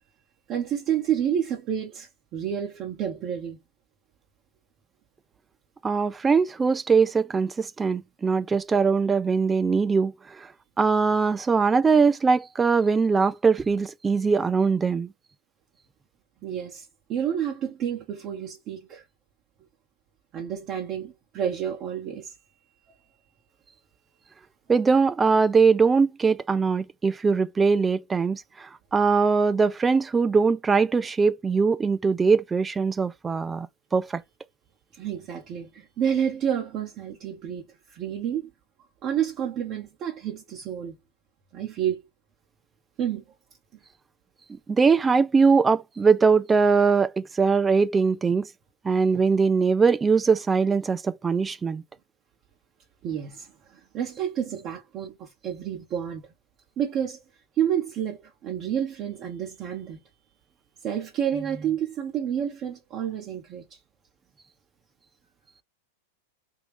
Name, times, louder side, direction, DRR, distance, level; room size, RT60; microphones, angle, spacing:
voice 1, 0.5-3.6 16.4-19.0 20.3-22.3 35.0-38.5 39.0-41.0 41.5-42.0 43.0-43.2 53.0-56.2 56.8-57.2 57.6-60.0 60.8-63.6, right 9 dB, 40° right, 0.9 m, -29 dB
voice 2, 5.8-10.1 10.8-15.1 24.7-33.7 33.9-34.2 44.7-48.5 48.8-51.8, right 5 dB, 15° right, 0.3 m, -21 dB
3.6 x 2.3 x 3.3 m
hypercardioid pair, 95°, 0 cm